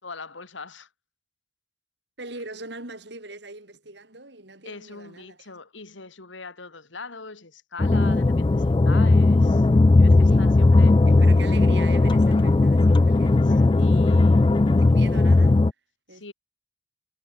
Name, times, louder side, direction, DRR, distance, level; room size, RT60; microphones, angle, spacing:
voice 1, 0.0-0.9 4.6-9.7 10.0-11.0 13.4-14.4 16.1-16.3, left 4 dB, 90° left, 2.6 m, -41 dB
voice 2, 2.2-5.5 10.1-10.5 11.1-14.5 14.8-15.6 16.1-16.2, right 2 dB, 65° right, 4.1 m, -42 dB
sound 1, 7.8-15.7, left 2 dB, 25° left, 0.3 m, -17 dB
head